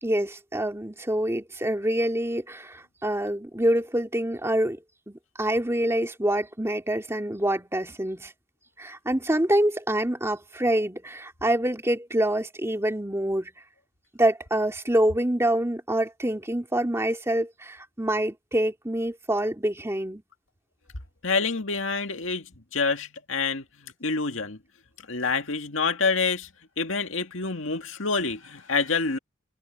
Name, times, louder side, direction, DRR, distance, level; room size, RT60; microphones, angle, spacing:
voice 1, 0.0-4.8 5.1-8.3 8.8-13.5 14.1-20.2, right 1 dB, 15° right, 2.3 m, -26 dB
voice 2, 21.2-22.5 22.7-23.6 24.0-24.6 25.1-26.5 26.8-29.2, left 4 dB, 75° left, 2.1 m, -27 dB
head